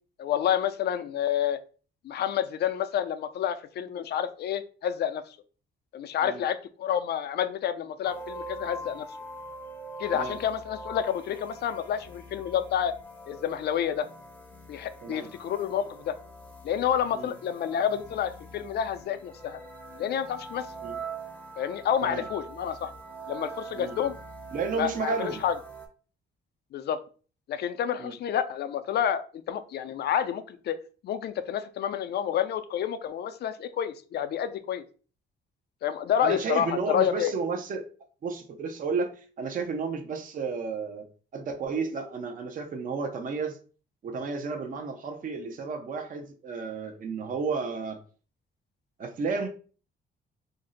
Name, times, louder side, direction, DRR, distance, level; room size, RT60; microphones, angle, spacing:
voice 1, 0.2-1.6 2.0-5.2 5.9-9.1 10.0-12.9 13.3-14.1 14.7-16.2 16.6-19.6 20.0-20.7 21.6-22.9 23.3-24.2 24.8-25.6 26.7-27.0 27.5-30.8 31.0-34.8 35.8-37.3, left 9 dB, 55° left, 11 dB, 0.4 m, -29 dB
sound 1, 8.0-25.9, right 2 dB, 10° left, 0.6 m, -43 dB
voice 2, 24.5-25.4 28.0-28.1 36.2-37.9 38.2-41.1 41.3-43.6 44.0-48.0 49.0-49.5, right 4 dB, 45° right, 5 dB, 0.6 m, -32 dB
2.5 x 2.0 x 3.8 m, 0.39 s
cardioid pair, 90°, 20 cm